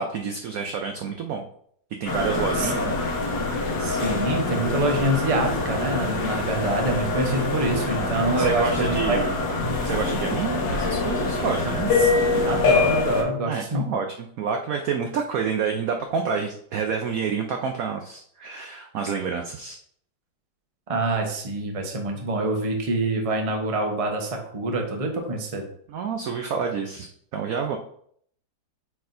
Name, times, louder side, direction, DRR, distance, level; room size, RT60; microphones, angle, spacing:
voice 1, 0.0-1.4 2.0-3.0 8.4-9.3 9.8-12.0 13.5-19.8 25.9-27.8, right 6 dB, 75° right, 4 dB, 0.8 m, -28 dB
sound 1, 2.1-13.2, left 3 dB, 70° left, 1.8 m, -25 dB
voice 2, 3.8-9.2 12.0-12.1 12.4-13.8 20.9-25.6, right 2 dB, 30° right, 3 dB, 0.6 m, -26 dB
8.4 x 4.4 x 2.6 m, 0.64 s
omnidirectional pair, 2.1 m